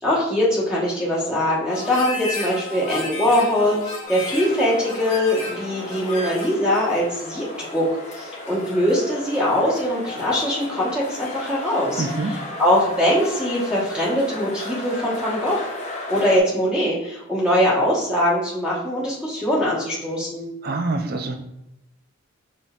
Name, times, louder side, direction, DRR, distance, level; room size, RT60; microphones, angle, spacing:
voice 1, 0.0-12.0 12.6-15.6 16.1-20.5, left 1 dB, 5° right, -7 dB, 1.1 m, -22 dB
Harmonica, 1.7-6.6, left 2 dB, 75° left, 1.1 m, -33 dB
sound 1, 4.0-16.4, left 2 dB, 35° left, 0.7 m, -35 dB
voice 2, 12.0-12.3 20.6-21.4, right 3 dB, 45° right, 6 dB, 0.4 m, -25 dB
5.1 x 4.1 x 2.4 m, 0.85 s
head